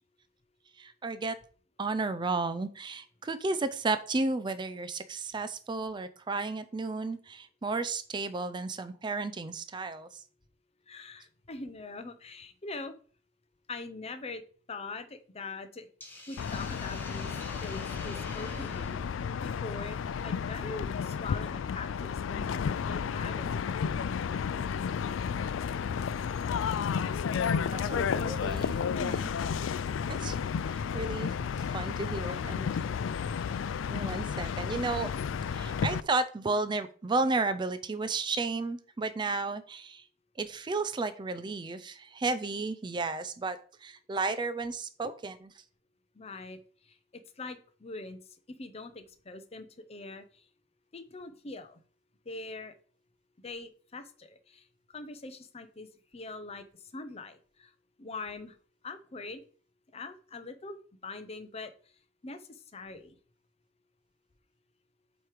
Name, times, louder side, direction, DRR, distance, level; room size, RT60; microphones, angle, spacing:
voice 1, 0.8-1.4 1.8-10.2 27.7-28.7 29.0-29.3 30.1-30.4 30.7-31.3 31.7-32.9 33.9-35.1 35.5-40.0 40.4-45.5, right 3 dB, 25° right, 12 dB, 0.4 m, -33 dB
voice 2, 10.9-12.9 13.7-14.4 14.7-15.9 16.3-17.3 17.6-19.0 19.4-23.9 46.2-46.6 47.1-48.2 48.6-50.2 50.9-51.8 52.3-52.7 53.4-54.6 54.9-56.7 56.9-57.7 58.0-58.5 58.8-59.4 59.9-60.8 61.0-61.7 62.2-63.2, left 3 dB, 35° left, 10 dB, 0.6 m, -43 dB
Hiss, 16.0-20.3, left 1 dB, 10° left, 1.2 m, -48 dB
sound 1, 16.4-36.0, left 6 dB, 90° left, 0.4 m, -32 dB
7.9 x 3.1 x 4.9 m, 0.42 s
head